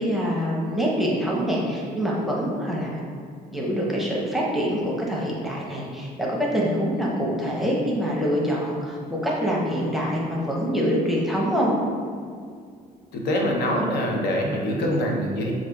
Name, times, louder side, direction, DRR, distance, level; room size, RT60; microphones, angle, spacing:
voice 1, 0.0-3.0 3.5-11.7, equal, ahead, -4 dB, 0.7 m, -25 dB
voice 2, 13.1-15.5, equal, 75° left, 0 dB, 0.7 m, -24 dB
6.1 x 2.4 x 2.3 m, 2.2 s
cardioid pair, 110°, 17 cm